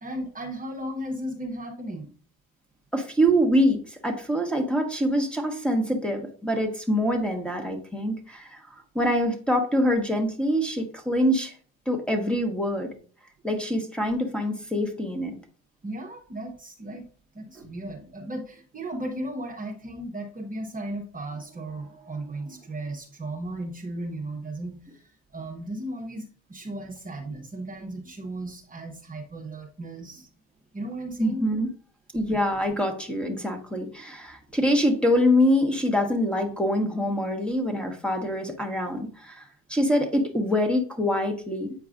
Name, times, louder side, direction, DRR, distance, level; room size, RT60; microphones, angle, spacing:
voice 1, 0.0-2.1 15.8-17.0 17.3-30.3 30.7-31.6, right 1 dB, 20° right, -1 dB, 1.1 m, -36 dB
voice 2, 2.9-11.5 11.9-12.9 13.4-15.4 17.6-17.7 31.2-31.7 32.1-41.7, equal, 5° left, 1 dB, 1.4 m, -25 dB
8.5 x 4.6 x 2.5 m, 0.43 s
hypercardioid pair, 75°, 41 cm